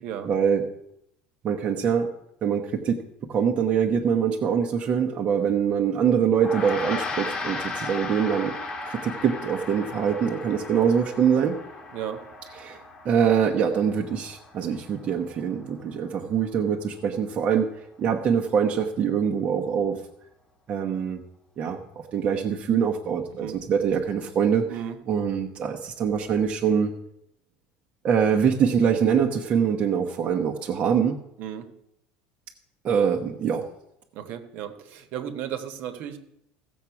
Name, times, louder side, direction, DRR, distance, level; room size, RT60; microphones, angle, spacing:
voice 1, 0.2-0.6 1.4-2.1 2.4-3.0 3.3-8.6 8.9-11.6 12.6-12.8 13.0-17.7 18.0-20.0 20.7-21.2 21.6-24.6 25.1-26.9 28.0-31.2 32.8-33.6, right 7 dB, 30° right, 1 dB, 0.9 m, -24 dB
Gong, 6.3-16.0, left 3 dB, 20° left, 1.2 m, -36 dB
voice 2, 11.9-12.2 23.3-23.6 24.7-25.0 31.4-31.7 34.1-36.2, right 9 dB, 50° right, 8 dB, 1.2 m, -34 dB
15.5 x 7.3 x 5.8 m, 0.79 s
cardioid pair, 165°, 4 cm